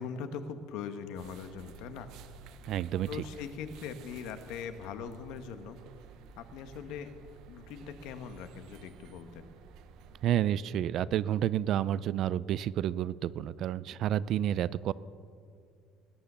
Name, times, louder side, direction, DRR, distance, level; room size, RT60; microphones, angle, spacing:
voice 1, 0.0-2.1 3.1-5.8 6.4-7.1 7.5-9.5, left 6 dB, 70° left, 9 dB, 1.2 m, -41 dB
sound 1, 1.1-10.3, right 5 dB, 60° right, 0.8 m, -53 dB
voice 2, 2.7-3.1 10.2-14.9, right 11 dB, 45° right, 19 dB, 0.3 m, -30 dB
20.0 x 9.8 x 6.8 m, 2.3 s
cardioid pair, 180°, 0 cm